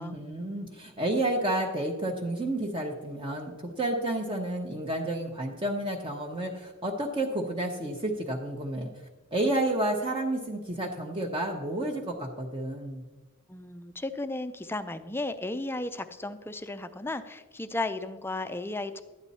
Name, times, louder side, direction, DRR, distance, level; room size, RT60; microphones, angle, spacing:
voice 1, 0.0-8.9 9.3-13.0, right 1 dB, 25° right, 0 dB, 0.9 m, -30 dB
voice 2, 13.5-19.0, left 2 dB, 10° left, 11 dB, 0.5 m, -34 dB
12.5 x 9.6 x 4.2 m, 1.3 s
head